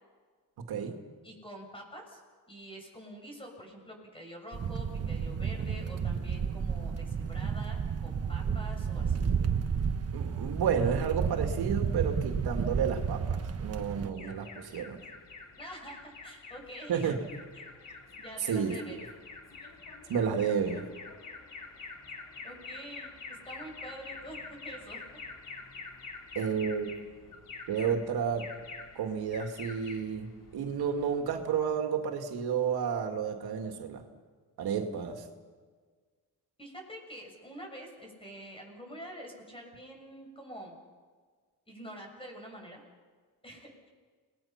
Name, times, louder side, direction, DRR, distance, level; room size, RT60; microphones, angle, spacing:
voice 1, 1.2-2.2 2.5-9.3 15.6-17.1 18.2-19.0 22.4-25.0 36.6-40.7 41.7-42.8 43.4-43.9, equal, 15° left, 2 dB, 6.9 m, -46 dB
sound 1, 4.5-14.1, right 6 dB, 40° right, 1.4 m, -32 dB
voice 2, 10.1-15.0 16.9-17.2 18.4-19.0 20.1-20.9 26.3-27.0 27.7-28.5 29.0-34.0 34.6-35.3, right 7 dB, 80° right, 4 dB, 2.3 m, -31 dB
Alarm, 14.1-31.8, left 4 dB, 55° left, 4.3 m, -47 dB
30.0 x 20.0 x 6.0 m, 1.5 s
cardioid pair, 125°, 37 cm